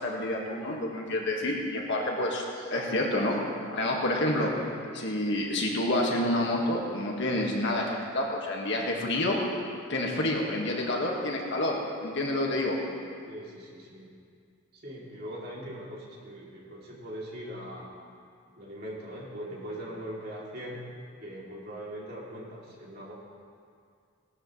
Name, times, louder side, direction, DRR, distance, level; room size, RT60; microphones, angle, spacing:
voice 1, 0.0-3.4 3.7-4.5 4.9-9.4 9.9-12.8, left 1 dB, 55° left, -1 dB, 1.9 m, -28 dB
voice 2, 13.3-14.1 14.8-17.9 18.6-20.8 21.2-23.1, equal, 45° right, -5 dB, 3.0 m, -41 dB
18.0 x 13.0 x 3.3 m, 2.3 s
head